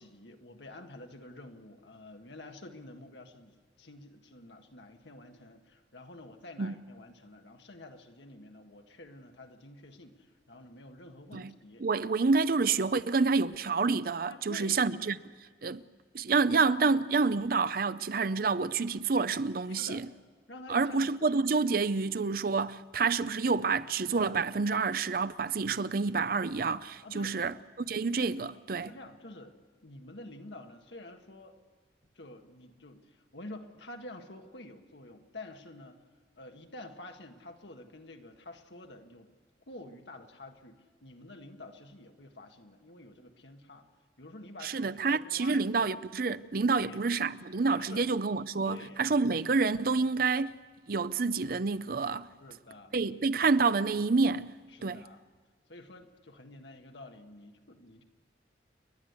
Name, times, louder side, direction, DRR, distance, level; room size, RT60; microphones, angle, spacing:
voice 1, 0.0-11.9 14.3-14.8 19.7-20.1 20.5-21.1 27.0-27.4 28.8-29.6 29.8-31.5 32.2-36.0 36.4-39.3 39.7-43.9 44.2-45.9 46.7-47.0 47.9-48.0 48.6-49.0 52.4-53.0 54.7-55.2 55.7-58.0, left 2 dB, 80° left, 1.8 m, -49 dB
voice 2, 11.8-15.2 15.6-15.8 16.1-20.1 20.7-28.9 44.6-50.5 50.9-52.3 52.9-54.5 54.8-55.0, right 4 dB, 55° right, 0.6 m, -28 dB
30.0 x 11.5 x 8.2 m
head